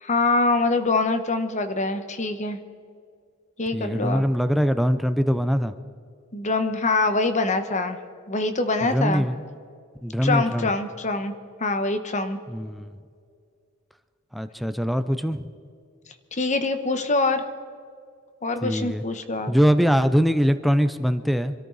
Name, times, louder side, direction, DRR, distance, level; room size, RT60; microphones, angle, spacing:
voice 1, 0.0-2.6 3.6-4.2 6.3-8.0 8.3-9.2 10.2-11.3 11.6-12.4 16.3-17.4 18.4-19.5, left 3 dB, 35° left, 9 dB, 1.1 m, -24 dB
voice 2, 3.7-5.7 8.8-9.4 10.0-10.7 12.5-13.0 14.3-15.5 18.6-19.0 19.5-21.5, equal, ahead, 10 dB, 0.5 m, -22 dB
26.5 x 13.0 x 4.0 m, 2.2 s
head